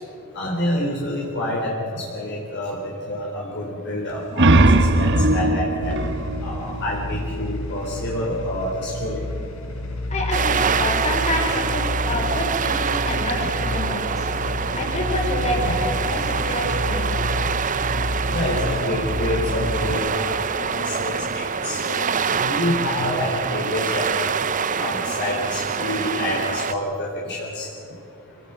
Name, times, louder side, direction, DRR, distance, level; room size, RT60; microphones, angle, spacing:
voice 1, 0.4-4.5 5.0-5.9 6.4-9.2 18.3-22.0 22.4-24.3 24.8-27.7, left 1 dB, 50° left, -3 dB, 3.5 m, -27 dB
sound 1, 4.1-7.5, right 2 dB, 55° right, 1.1 m, -19 dB
sound 2, 5.8-19.9, left 1 dB, 75° left, 3.7 m, -29 dB
voice 2, 10.1-14.3 14.7-17.2, left 1 dB, 30° left, -1 dB, 5.5 m, -27 dB
sound 3, 10.3-26.7, right 6 dB, 35° right, 0.7 m, -25 dB
26.0 x 18.0 x 8.0 m, 2.8 s
head